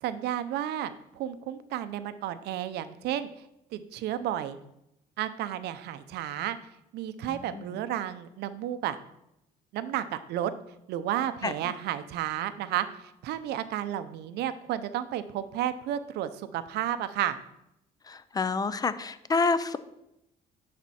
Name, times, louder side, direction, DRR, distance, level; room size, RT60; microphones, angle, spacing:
voice 1, 0.0-3.3 3.7-4.6 5.2-6.6 6.9-9.0 9.7-10.5 10.9-17.4, right 11 dB, 75° right, 12 dB, 0.6 m, -32 dB
voice 2, 18.1-19.8, left 4 dB, 20° left, 14 dB, 0.5 m, -28 dB
10.5 x 4.3 x 4.2 m, 0.83 s
cardioid pair, 110°, 17 cm